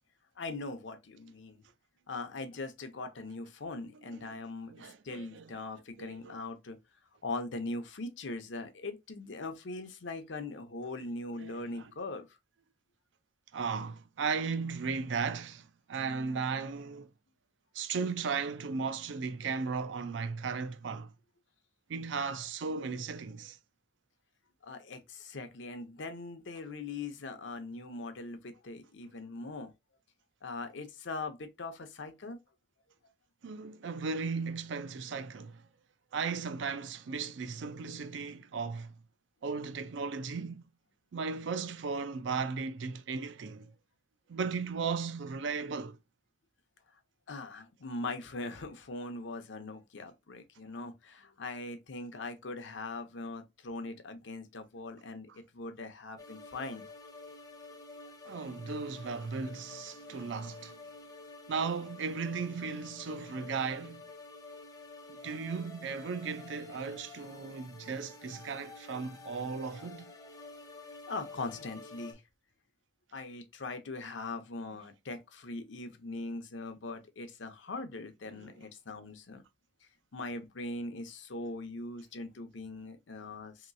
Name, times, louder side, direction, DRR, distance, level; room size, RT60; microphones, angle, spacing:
voice 1, 0.4-1.6 2.1-6.8 7.2-12.3 24.6-29.7 30.4-32.4 47.3-56.9 71.1-72.2 73.1-79.4 80.1-83.7, left 3 dB, 80° left, 0.7 m, -41 dB
voice 2, 4.7-5.5 6.0-6.4 11.3-11.9 13.5-17.1 17.7-21.1 21.9-23.6 33.4-35.6 36.1-38.9 39.4-40.6 41.1-43.7 44.3-46.0 58.2-60.8 61.5-64.0 65.1-70.0 78.3-78.5, right 5 dB, 80° right, 0.4 m, -36 dB
sound 1, 56.2-72.1, left 3 dB, 20° left, 0.5 m, -50 dB
3.0 x 2.9 x 2.5 m
head